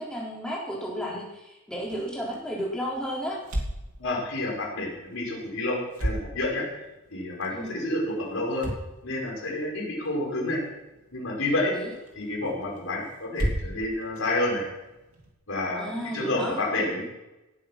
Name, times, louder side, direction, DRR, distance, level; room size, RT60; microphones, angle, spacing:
voice 1, 0.0-3.4 7.5-7.8 11.7-11.9 15.8-16.5, equal, 5° left, -4 dB, 4.0 m, -33 dB
sound 1, 1.7-15.3, equal, 80° right, 2.8 m, -38 dB
voice 2, 4.0-6.7 7.1-8.7 9.0-10.6 11.1-11.7 12.1-14.7 15.5-17.0, left 2 dB, 65° left, -3 dB, 5.1 m, -29 dB
18.0 x 8.5 x 6.1 m, 1.0 s
head